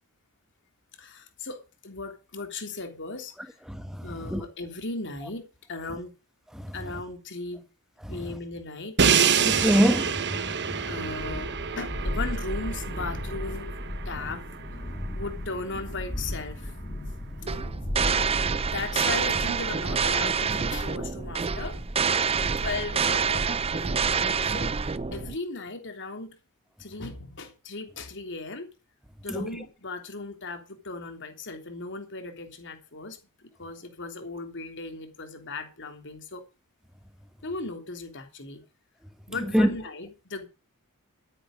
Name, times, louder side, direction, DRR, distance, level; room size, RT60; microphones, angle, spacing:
voice 1, 1.0-3.6 4.0-6.1 6.7-7.6 8.1-9.0 10.9-13.8 14.1-14.4 14.7-14.9 15.1-16.7 17.4-17.7 18.6-21.8 22.6-23.5 23.7-26.4 26.8-28.7 29.2-36.4 37.4-38.6 39.3-40.5, left 3 dB, 55° left, 3.3 m, -37 dB
Crash cymbal, 9.0-15.0, right 7 dB, 50° right, 1.2 m, -27 dB
voice 2, 9.4-10.9 29.3-29.5 39.5-39.7, equal, ahead, 1.2 m, -24 dB
Thunderstorm, 10.9-22.4, left 1 dB, 25° left, 3.5 m, -36 dB
sound 1, 17.5-25.4, right 5 dB, 25° right, 0.6 m, -27 dB
13.0 x 10.0 x 5.1 m
head